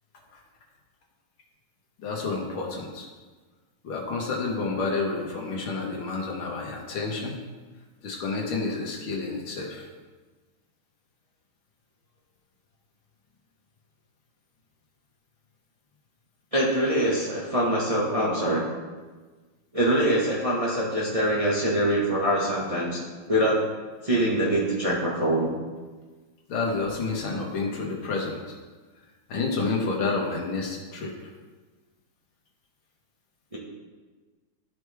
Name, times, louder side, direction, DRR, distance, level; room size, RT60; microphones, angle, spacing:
voice 1, 2.0-3.1 3.8-7.4 8.0-9.9 26.5-28.6 29.3-31.2, left 3 dB, 85° left, 0 dB, 2.1 m, -29 dB
voice 2, 16.5-18.6 19.7-23.0 23.3-23.6 24.0-25.5 33.5-33.6, right 1 dB, 25° right, -5 dB, 0.9 m, -24 dB
12.5 x 4.7 x 3.4 m, 1.3 s
omnidirectional pair, 2.2 m